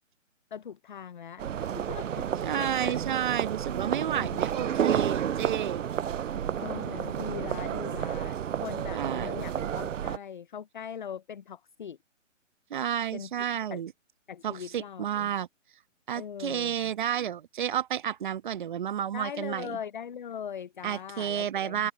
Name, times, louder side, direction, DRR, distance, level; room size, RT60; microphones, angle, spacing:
voice 1, 0.5-2.3 2.5-3.0 4.2-4.7 6.6-12.0 13.1-13.3 13.7-13.8 14.3-15.3 16.1-16.9 19.1-21.9, left 8 dB, 40° left, 0.5 m, -41 dB
sound 1, 1.4-10.2, right 9 dB, 80° right, 0.5 m, -31 dB
voice 2, 2.4-5.8 8.9-9.4 12.7-13.9 14.4-15.5 16.1-19.8 20.8-21.9, right 10 dB, 40° right, 1.3 m, -31 dB
figure-of-eight pair, 145°, 37 cm